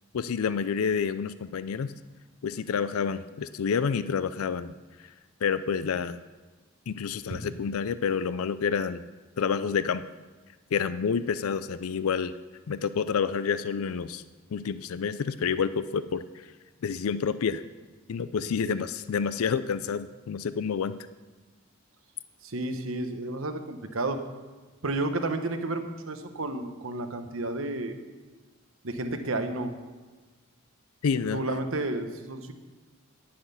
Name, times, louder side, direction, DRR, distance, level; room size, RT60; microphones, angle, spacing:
voice 1, 0.1-1.9 2.4-4.7 5.4-6.2 6.9-9.0 9.4-10.0 10.7-12.3 12.7-14.2 14.5-16.2 16.8-17.6 18.1-21.0 31.0-31.4, left 6 dB, 85° left, 14 dB, 0.4 m, -28 dB
voice 2, 18.4-18.8 22.4-24.2 24.8-28.0 28.8-29.7 31.3-32.5, right 2 dB, 70° right, 7 dB, 1.0 m, -31 dB
10.5 x 10.0 x 5.6 m, 1.3 s
head